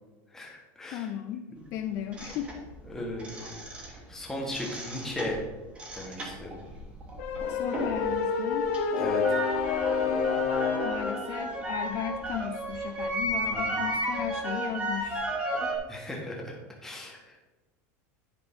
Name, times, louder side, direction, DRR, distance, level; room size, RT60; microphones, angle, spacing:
voice 1, 0.3-1.1 1.5-1.6 2.9-3.5 4.1-5.4 5.9-6.6 9.0-9.4 13.5-13.8 15.9-17.4, left 1 dB, 5° left, -1 dB, 1.3 m, -37 dB
voice 2, 0.9-2.5 7.5-8.8 10.8-15.3, left 9 dB, 35° left, 7 dB, 0.3 m, -36 dB
sound 1, 2.1-4.2 4.4-8.1 8.4-15.8, right 1 dB, 15° right, 1.2 m, -34 dB
sound 2, 7.2-11.2, left 5 dB, 65° left, 1.2 m, -28 dB
10.5 x 5.4 x 3.7 m, 1.2 s
supercardioid pair, 175°, 8 cm